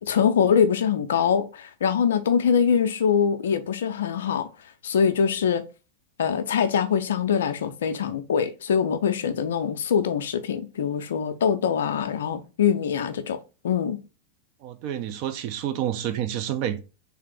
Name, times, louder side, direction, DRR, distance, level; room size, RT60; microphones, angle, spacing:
voice 1, 0.0-4.5 4.8-5.7 6.2-14.0, left 7 dB, 65° left, 0.4 m, -23 dB
voice 2, 14.6-16.8, right 10 dB, 45° right, 0.5 m, -29 dB
3.3 x 3.2 x 3.4 m
figure-of-eight pair, 90°, 0 cm